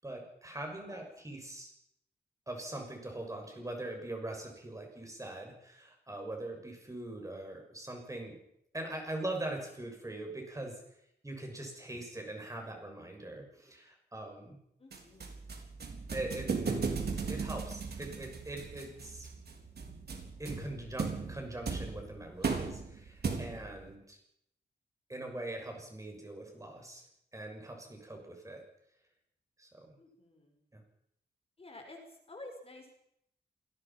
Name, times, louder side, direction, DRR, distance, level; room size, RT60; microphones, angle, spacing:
voice 1, 0.0-1.7 2.5-8.4 8.7-10.8 11.2-14.6 16.1-16.8 17.3-19.3 20.4-24.2 25.1-27.0 27.3-28.6 29.6-29.7 30.7-30.8, right 1 dB, 20° right, 2 dB, 6.7 m, -42 dB
voice 2, 14.8-15.5 30.0-30.6 31.6-32.9, left 2 dB, 35° left, 3 dB, 5.3 m, -51 dB
sound 1, 14.9-23.8, right 5 dB, 65° right, 4.1 m, -37 dB
27.0 x 20.0 x 5.9 m, 0.74 s
wide cardioid pair, 145°, 18 cm